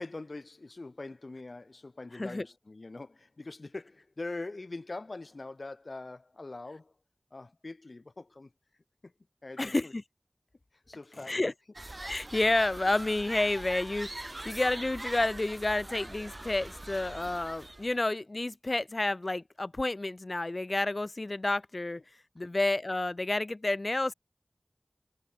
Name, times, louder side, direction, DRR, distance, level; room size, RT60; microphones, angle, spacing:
voice 1, 0.0-6.9 7.3-8.5 9.0-9.1 9.4-9.9 10.7-11.4, left 2 dB, 80° left, 2.2 m, -43 dB
voice 2, 9.6-10.0 11.3-11.5 12.1-22.0 22.4-24.1, left 2 dB, 55° left, 0.4 m, -30 dB
sound 1, 11.8-18.0, right 1 dB, 40° right, 1.5 m, -42 dB
wide cardioid pair, 50°, 0 cm